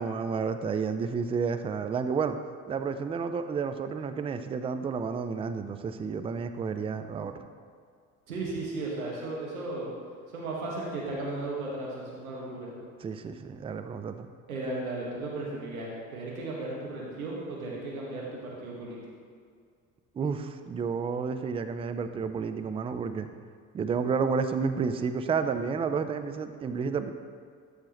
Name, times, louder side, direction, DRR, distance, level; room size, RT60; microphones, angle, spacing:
voice 1, 0.0-2.4 2.7-7.4 13.0-14.3 20.2-23.3 23.7-27.1, right 5 dB, 15° right, 10 dB, 0.4 m, -31 dB
voice 2, 8.3-9.9 10.3-12.7 14.5-19.0, right 2 dB, 80° right, -4 dB, 1.7 m, -35 dB
12.5 x 6.4 x 3.1 m, 2.1 s
figure-of-eight pair, 60°, 42 cm